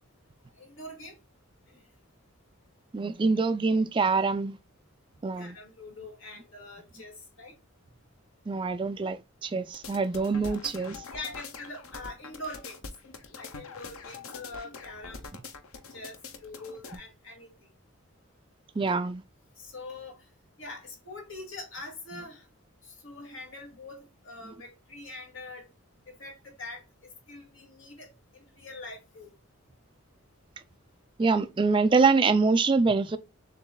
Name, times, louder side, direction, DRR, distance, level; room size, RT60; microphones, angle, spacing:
voice 1, 0.6-1.2 1.7-1.8 5.4-7.5 11.1-12.8 13.3-15.3 15.9-17.5 19.6-20.2 20.6-22.5 22.8-25.7 26.1-29.3, left 2 dB, 65° left, 2.2 m, -44 dB
voice 2, 2.9-4.6 5.2-5.5 8.5-11.0 18.8-19.2 31.2-33.2, right 4 dB, 25° right, 0.4 m, -25 dB
sound 1, 9.7-17.0, left 4 dB, 90° left, 0.8 m, -43 dB
6.6 x 3.0 x 2.3 m
head